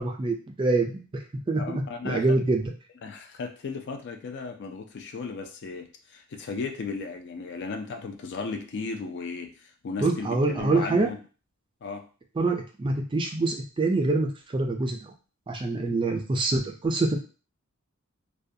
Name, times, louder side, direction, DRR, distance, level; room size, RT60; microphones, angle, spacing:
voice 1, 0.0-2.7 10.0-11.1 12.4-15.1 15.5-17.2, right 3 dB, 25° right, 3 dB, 0.3 m, -26 dB
voice 2, 1.6-2.4 3.0-11.2 11.8-12.1 15.9-16.0, left 4 dB, 55° left, 5 dB, 0.4 m, -35 dB
2.3 x 2.1 x 2.6 m, 0.36 s
head